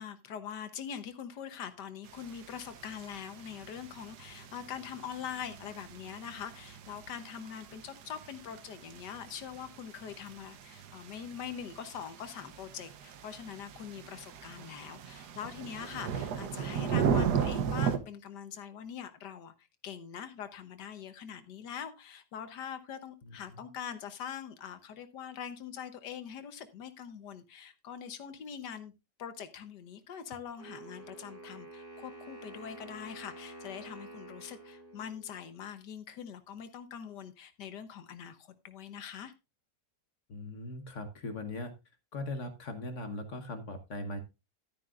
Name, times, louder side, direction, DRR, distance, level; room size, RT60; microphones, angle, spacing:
voice 1, 0.0-19.5 19.8-28.9 29.2-39.3, left 8 dB, 85° left, 1.6 m, -43 dB
sound 1, 2.1-18.0, right 7 dB, 75° right, 1.5 m, -37 dB
voice 2, 23.2-23.6 40.3-41.7 42.1-44.2, left 2 dB, 50° left, 1.4 m, -40 dB
Wind instrument woodwind instrument, 30.6-35.6, right 2 dB, 20° left, 3.9 m, -49 dB
12.0 x 9.8 x 2.5 m
omnidirectional pair, 1.8 m